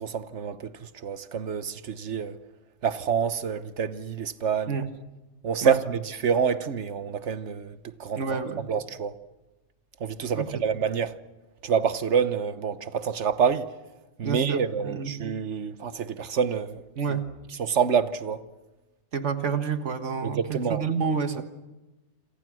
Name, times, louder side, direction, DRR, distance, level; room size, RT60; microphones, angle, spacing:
voice 1, 0.0-2.4 2.8-4.8 5.4-8.4 8.7-9.1 10.0-11.2 11.6-13.7 14.2-16.8 17.6-18.4 20.2-20.8 21.4-21.5, right 7 dB, 75° right, 1.4 m, -27 dB
voice 2, 8.2-8.7 10.3-10.6 14.2-15.2 17.0-17.3 19.1-21.4, right 5 dB, 90° right, 1.9 m, -29 dB
27.5 x 27.5 x 6.2 m
omnidirectional pair, 1.2 m